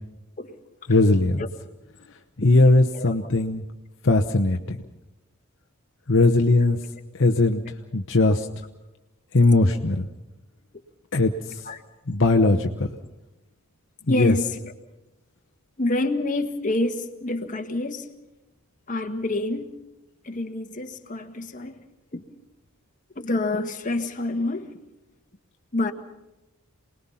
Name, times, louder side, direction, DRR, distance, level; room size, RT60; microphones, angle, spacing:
voice 1, 0.9-1.4 2.4-3.6 4.0-4.8 6.1-6.8 7.1-7.6 7.9-8.5 9.3-10.1 11.1-11.7 12.1-12.9 14.1-14.4, left 2 dB, 60° left, 1.0 m, -19 dB
voice 2, 14.1-14.4 15.8-18.1 18.9-19.8 20.2-21.8 22.1-22.2 23.2-24.8 25.7-25.9, left 2 dB, 35° left, 1.6 m, -27 dB
28.0 x 20.0 x 5.7 m
head